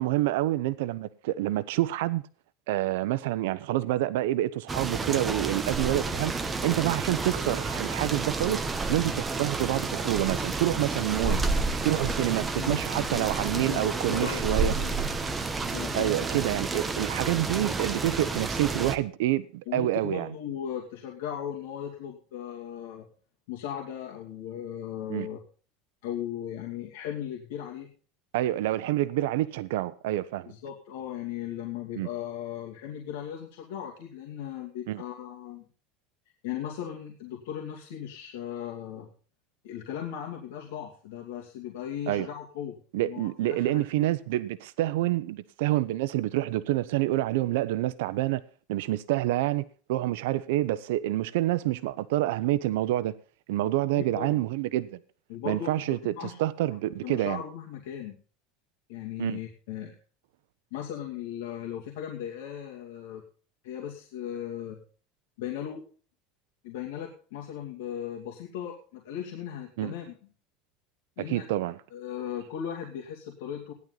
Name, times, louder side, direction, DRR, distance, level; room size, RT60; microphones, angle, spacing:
voice 1, 0.0-2.2 2.7-6.3 6.6-8.6 8.9-11.4 11.8-14.7 15.9-20.3 25.1-25.3 28.3-30.5 32.0-32.1 34.9-35.0 42.1-42.3 42.9-48.4 48.7-49.6 49.9-53.1 53.5-55.0 55.5-57.4 59.2-59.4 69.8-69.9 71.3-71.8, right 15 dB, 85° right, 0.8 m, -27 dB
sound 1, 4.7-19.0, right 3 dB, 10° right, 1.0 m, -30 dB
voice 2, 11.9-12.3 12.6-14.9 15.7-16.1 19.7-23.1 23.5-25.4 26.0-27.9 30.5-35.6 36.4-39.1 39.6-44.1 54.0-54.4 55.3-55.7 56.2-56.4 57.0-58.2 58.9-59.9 60.7-63.2 63.6-64.8 65.4-65.8 66.6-70.1 71.2-71.4 71.9-73.7, left 10 dB, 80° left, 2.5 m, -37 dB
16.0 x 11.0 x 4.0 m
cardioid pair, 165°, 0 cm